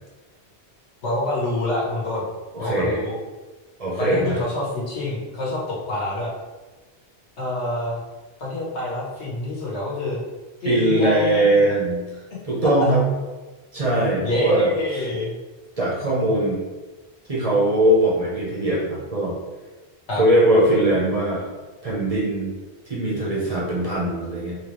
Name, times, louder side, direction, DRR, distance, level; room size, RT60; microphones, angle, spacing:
voice 1, 1.0-2.3 2.6-3.2 4.0-6.3 7.4-8.0 8.4-10.2 10.6-11.6 14.2-15.3 20.1-20.2, left 1 dB, 75° left, -5 dB, 1.5 m, -26 dB
voice 2, 2.5-3.0 3.8-4.4 10.6-12.0 12.5-13.0 13.7-14.7 15.8-16.6 17.3-19.4 20.2-21.5 21.8-22.5 22.9-24.6, right 1 dB, 35° right, -6 dB, 0.9 m, -20 dB
3.5 x 3.2 x 3.1 m, 1.2 s
omnidirectional pair, 1.1 m